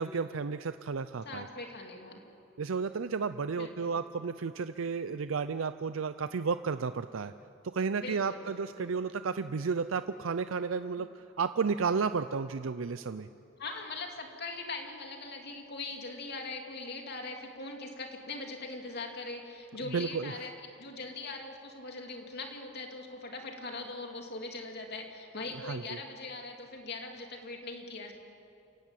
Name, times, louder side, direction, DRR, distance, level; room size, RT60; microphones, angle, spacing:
voice 1, 0.0-1.5 2.6-7.3 7.6-11.1 11.4-13.3 19.8-20.3 25.6-26.0, right 5 dB, 80° right, 11 dB, 0.5 m, -32 dB
voice 2, 1.2-2.2 3.6-4.0 8.0-9.0 11.0-11.1 13.6-20.5 20.8-28.1, left 3 dB, 55° left, 2 dB, 2.9 m, -41 dB
28.5 x 16.0 x 9.1 m, 2.7 s
head